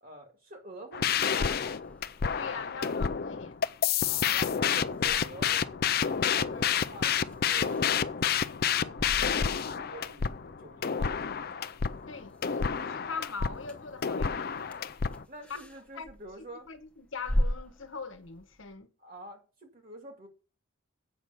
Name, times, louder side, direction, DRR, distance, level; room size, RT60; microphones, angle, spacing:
voice 1, 0.0-2.0 4.1-5.6 6.0-7.9 8.2-9.0 9.3-11.7 15.3-16.7 19.0-20.3, right 2 dB, 45° right, 2.0 m, -48 dB
sound 1, 0.9-15.2, left 7 dB, 45° left, 0.4 m, -29 dB
sound 2, 1.2-18.8, equal, 5° left, 1.1 m, -41 dB
voice 2, 2.3-3.6 6.5-6.8 12.1-14.6 15.9-16.1 16.7-18.9, left 4 dB, 65° left, 1.2 m, -42 dB
sound 3, 5.4-12.9, left 5 dB, 80° right, 3.6 m, -59 dB
8.2 x 6.2 x 7.0 m
head